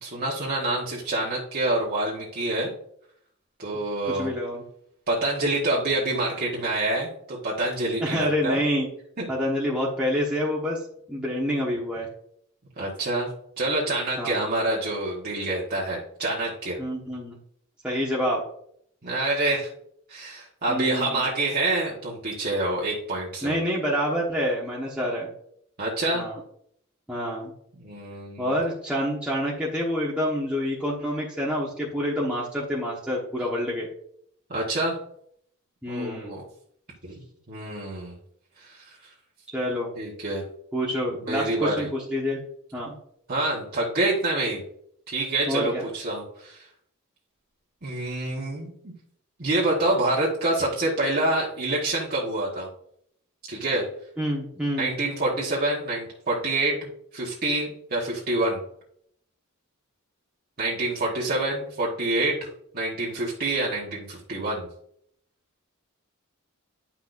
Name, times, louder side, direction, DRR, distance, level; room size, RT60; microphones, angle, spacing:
voice 1, 0.0-2.7 3.6-4.3 5.1-8.6 9.2-9.3 12.8-13.3 13.6-16.8 19.0-19.7 20.1-23.6 25.8-26.3 27.8-28.5 34.5-34.9 35.9-36.4 37.0-37.2 37.5-38.1 38.6-38.9 40.0-40.4 41.2-41.9 43.3-44.6 45.1-46.7 47.8-48.9 49.4-52.7 53.5-53.8 54.8-56.8 57.1-58.6 60.6-62.5 62.7-64.7, right 2 dB, 45° right, -5 dB, 1.4 m, -27 dB
voice 2, 4.0-4.6 8.0-8.9 9.3-10.8 11.1-12.1 14.2-14.4 16.8-17.4 17.8-18.4 20.7-21.3 23.4-25.3 26.1-26.4 27.1-27.5 28.4-33.9 35.8-36.4 39.5-39.9 40.7-42.4 42.7-42.9 45.5-45.9 54.2-54.9, equal, 5° right, -6 dB, 1.2 m, -27 dB
9.8 x 6.0 x 2.6 m, 0.68 s
head